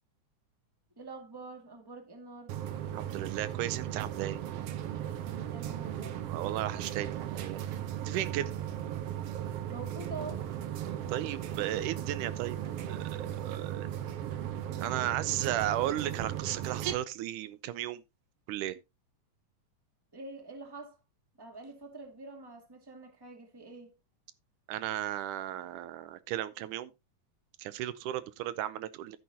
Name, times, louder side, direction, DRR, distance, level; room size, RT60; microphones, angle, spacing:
voice 1, 1.0-2.6 5.3-6.2 9.7-10.5 20.1-21.0 21.3-23.9, right 3 dB, 10° right, 1.7 m, -46 dB
sound 1, 2.5-16.9, right 10 dB, 65° right, 1.6 m, -37 dB
voice 2, 2.9-4.4 6.3-7.6 8.1-8.5 11.1-12.6 12.9-13.9 14.8-18.0 18.5-18.8 24.7-26.9 27.6-29.2, right 13 dB, 85° right, 2.2 m, -35 dB
11.0 x 9.5 x 2.8 m
omnidirectional pair, 3.5 m